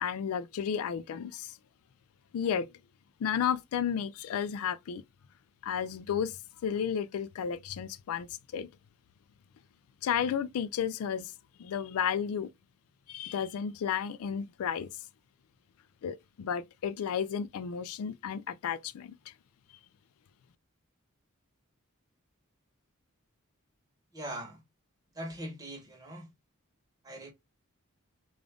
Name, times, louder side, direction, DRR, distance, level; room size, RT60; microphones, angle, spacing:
voice 1, 0.0-1.6 2.3-2.7 3.2-5.0 5.6-8.3 8.5-8.7 10.0-11.3 11.6-12.5 13.1-14.9 16.0-19.3, left 8 dB, 85° left, 0.3 m, -32 dB
voice 2, 24.1-24.6 25.1-26.3 27.0-27.3, right 1 dB, 15° right, 1.0 m, -41 dB
3.7 x 2.4 x 3.3 m
head